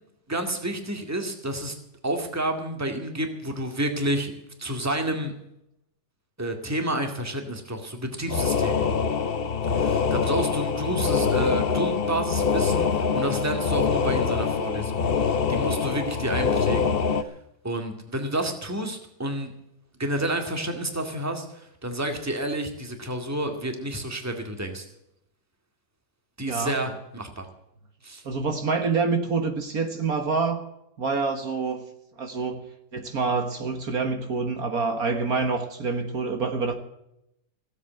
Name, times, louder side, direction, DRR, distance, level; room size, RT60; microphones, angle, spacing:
voice 1, 0.3-1.8 2.0-4.3 4.6-5.3 6.4-8.9 9.7-15.0 15.5-17.3 17.6-19.5 20.0-24.8 26.4-27.5 28.0-28.2, right 1 dB, 10° right, 2.0 m, -30 dB
sound 1, 8.3-17.2, left 5 dB, 45° left, 0.8 m, -24 dB
voice 2, 26.5-26.8 28.2-30.7 31.0-31.8 32.2-32.6 32.9-36.7, right 4 dB, 60° right, 1.9 m, -26 dB
16.5 x 8.4 x 9.1 m
omnidirectional pair, 1.9 m